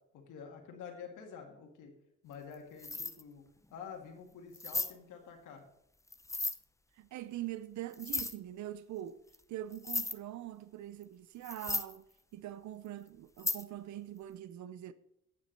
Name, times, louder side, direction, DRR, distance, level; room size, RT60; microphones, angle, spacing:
voice 1, 0.1-1.9 2.2-3.4 3.7-5.6, left 6 dB, 85° left, 2.1 m, -48 dB
sound 1, 2.3-2.5 2.8-3.2 3.7-3.8 4.5-4.9 6.1-6.6 7.9-8.4 9.3-9.4 9.7-10.1 11.0-11.1 11.4-12.0 13.4-13.6, left 2 dB, 10° left, 0.7 m, -35 dB
voice 2, 6.9-9.2 9.5-12.0 12.3-14.9, right 13 dB, 70° right, 0.7 m, -43 dB
8.5 x 7.5 x 6.7 m
cardioid pair, 90°, 30 cm